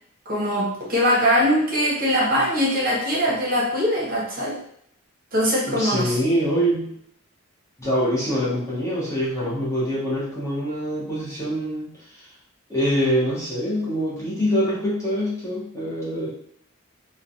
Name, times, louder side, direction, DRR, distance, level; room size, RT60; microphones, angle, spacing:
voice 1, 0.3-4.6 5.3-6.2, equal, 40° right, -5 dB, 0.8 m, -22 dB
voice 2, 5.7-7.0 7.8-12.3 12.7-16.3, equal, 15° left, -8 dB, 0.9 m, -24 dB
3.1 x 2.1 x 2.5 m, 0.70 s
head